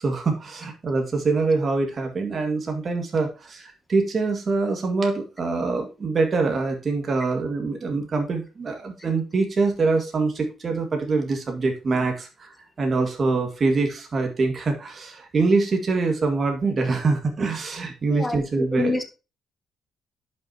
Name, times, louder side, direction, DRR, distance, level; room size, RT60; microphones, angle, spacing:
voice 1, 0.0-12.5 12.8-19.0, right 3 dB, 40° right, 3 dB, 1.9 m, -24 dB
voice 2, 18.0-19.1, left 2 dB, 15° left, 7 dB, 1.6 m, -28 dB
11.5 x 5.7 x 2.8 m, 0.30 s
cardioid pair, 90°, 0 cm